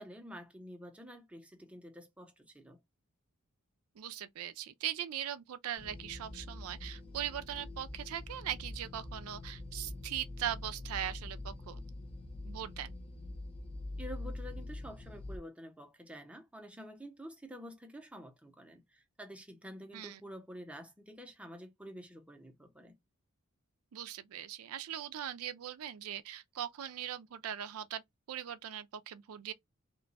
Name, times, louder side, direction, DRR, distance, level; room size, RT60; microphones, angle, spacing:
voice 1, 0.0-2.8 14.0-22.9, equal, 5° right, 0.7 m, -49 dB
voice 2, 4.0-11.8 12.4-12.9 19.9-20.2 23.9-28.0 28.3-29.5, right 10 dB, 75° right, 0.4 m, -40 dB
sound 1, 5.8-15.4, left 2 dB, 25° left, 0.9 m, -44 dB
2.9 x 2.2 x 3.9 m
head